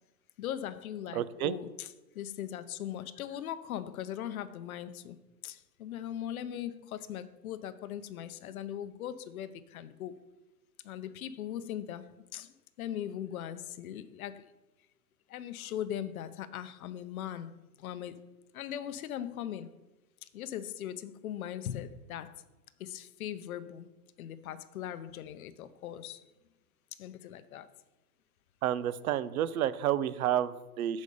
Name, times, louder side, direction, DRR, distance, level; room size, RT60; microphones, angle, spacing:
voice 1, 0.4-1.9 2.1-5.2 5.4-10.2 10.8-14.5 15.3-18.2 18.5-19.8 20.3-22.4 22.8-23.9 24.2-26.2 27.0-27.7, left 10 dB, 60° left, 0.6 m, -40 dB
voice 2, 1.1-1.6 28.6-31.0, right 11 dB, 60° right, 0.5 m, -30 dB
6.7 x 5.1 x 5.2 m
hypercardioid pair, 165°, 49 cm